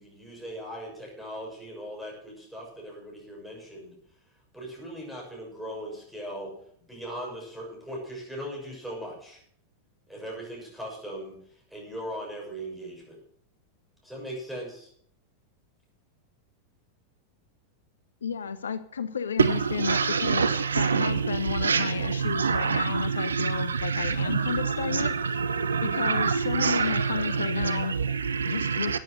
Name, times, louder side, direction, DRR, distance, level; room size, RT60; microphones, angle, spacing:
voice 1, 0.0-4.0 4.5-6.6 6.9-9.4 10.1-13.2 14.0-14.9, equal, ahead, 6.8 m, -39 dB
voice 2, 18.2-20.5 20.7-25.1 25.8-28.0 28.4-29.0, left 6 dB, 70° left, 0.7 m, -32 dB
voice 3, 19.4-29.0, right 5 dB, 70° right, 0.7 m, -26 dB
13.5 x 9.3 x 6.4 m
figure-of-eight pair, 90°, 0 cm